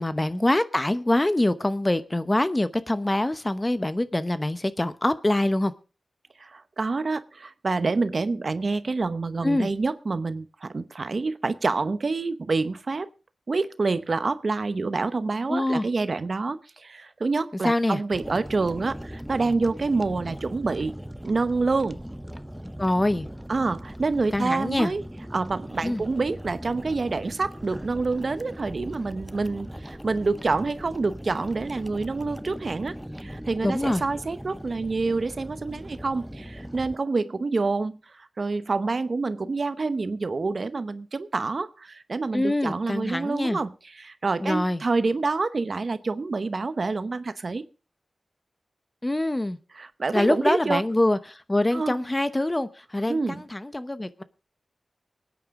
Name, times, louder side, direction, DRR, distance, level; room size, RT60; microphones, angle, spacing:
voice 1, 0.0-5.7 9.4-9.7 15.5-15.9 17.6-18.0 22.8-23.3 24.3-24.9 25.8-26.0 33.6-34.0 42.3-43.6 44.4-44.8 49.0-49.6 50.1-54.2, left 1 dB, 20° left, 13 dB, 0.9 m, -24 dB
voice 2, 6.4-13.1 13.5-20.9 21.2-22.0 23.5-25.0 25.3-47.6 49.8-50.8 51.7-52.0 53.1-53.4, right 3 dB, 60° right, 13 dB, 0.9 m, -27 dB
sound 1, 18.1-37.0, equal, 5° right, 0.7 m, -39 dB
24.5 x 9.5 x 3.7 m, 0.33 s
wide cardioid pair, 70°, 0 cm